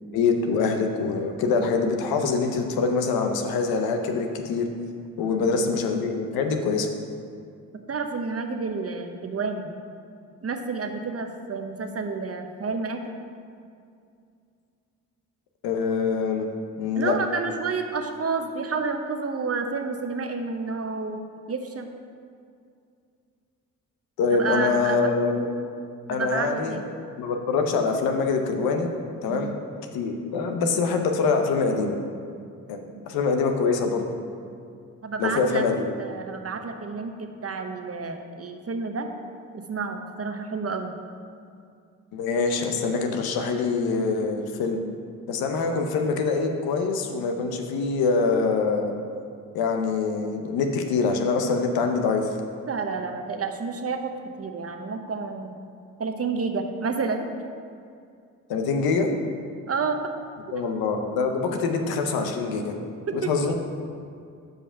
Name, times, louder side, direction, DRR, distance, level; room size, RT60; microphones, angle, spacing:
voice 1, 0.1-4.7 5.2-6.9 15.6-16.5 16.8-17.2 24.2-25.5 26.1-26.8 27.2-28.9 29.2-29.5 29.9-32.0 32.7-34.2 35.2-35.9 42.1-44.8 45.3-48.9 49.5-52.3 58.5-59.1 60.5-62.7 63.1-63.5, left 4 dB, 90° left, 4 dB, 0.7 m, -24 dB
voice 2, 7.7-9.7 10.4-13.1 16.9-21.2 21.5-21.9 24.3-25.1 26.1-26.9 29.3-29.5 35.0-35.7 36.0-39.1 39.5-40.9 52.7-55.5 56.0-57.3 59.7-60.0 60.5-60.6 63.1-63.3, right 4 dB, 40° right, 6 dB, 0.9 m, -30 dB
7.6 x 5.1 x 5.5 m, 2.4 s
supercardioid pair, 45°, 35 cm